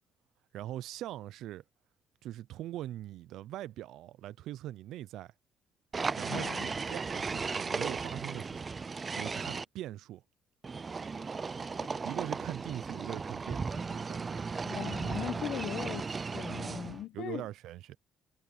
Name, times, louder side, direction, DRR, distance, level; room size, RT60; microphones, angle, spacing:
voice 1, 0.5-1.6 2.2-5.3 6.2-8.6 9.1-10.2 11.9-14.5 17.1-18.0, right 13 dB, 85° right, 0.5 m, -42 dB
sound 1, 5.9-9.6 10.6-17.0, right 4 dB, 30° right, 0.4 m, -36 dB
voice 2, 6.3-6.7 11.8-11.9 14.6-17.4, left 11 dB, 75° left, 1.0 m, -39 dB
cardioid pair, 120°, 0 cm